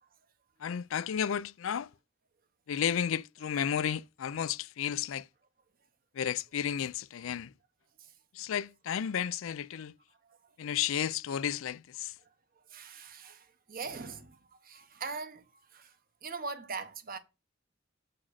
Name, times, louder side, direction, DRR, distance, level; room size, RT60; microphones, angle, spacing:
voice 1, 0.6-1.9 2.7-5.3 6.1-7.5 8.3-9.9 10.6-12.1, left 8 dB, 85° left, 0.4 m, -32 dB
voice 2, 12.7-15.4 15.7-16.0 16.2-17.2, right 4 dB, 45° right, 1.0 m, -41 dB
6.1 x 5.9 x 6.4 m
head